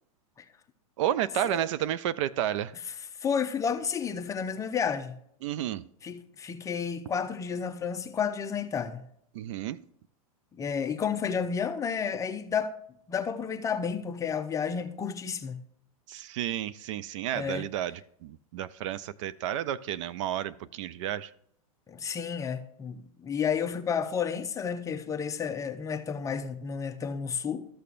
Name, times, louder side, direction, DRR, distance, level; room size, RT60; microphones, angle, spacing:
voice 1, 1.0-2.7 5.4-5.9 9.3-9.8 16.1-21.3, right 11 dB, 55° right, 0.4 m, -31 dB
voice 2, 3.2-5.1 6.0-9.0 10.5-12.7 13.1-15.6 17.3-17.7 21.9-27.7, left 6 dB, 15° left, 0.7 m, -31 dB
13.5 x 6.7 x 2.5 m
hypercardioid pair, 125°, 19 cm